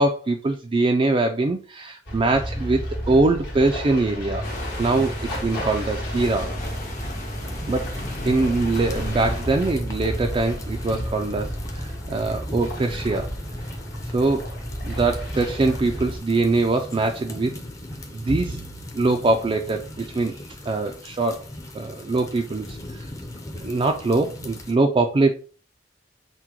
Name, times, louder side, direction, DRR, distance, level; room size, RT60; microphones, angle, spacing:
voice 1, 0.0-2.8 3.1-4.4 4.8-6.5 7.7-7.9 8.2-13.3 14.1-14.5 14.8-17.5 18.1-18.7 18.9-20.3 20.7-21.4 21.7-23.1 23.6-25.4, right 3 dB, 30° right, 3 dB, 0.3 m, -23 dB
sound 1, 2.1-16.2, equal, 65° left, 1.7 m, -32 dB
sound 2, 4.4-9.4, left 1 dB, 45° left, 1.4 m, -37 dB
sound 3, 6.6-24.7, left 1 dB, 20° left, 0.6 m, -39 dB
5.8 x 2.2 x 2.9 m, 0.37 s
head